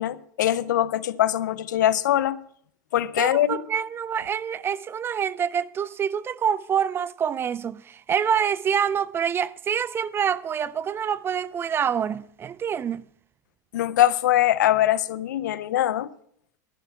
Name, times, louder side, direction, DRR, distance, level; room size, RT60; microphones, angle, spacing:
voice 1, 0.0-2.4 2.9-3.6 13.7-16.1, left 12 dB, 80° left, 0.6 m, -22 dB
voice 2, 3.2-13.0, right 8 dB, 25° right, 0.4 m, -26 dB
11.5 x 11.0 x 4.7 m
hypercardioid pair, 110°, 10 cm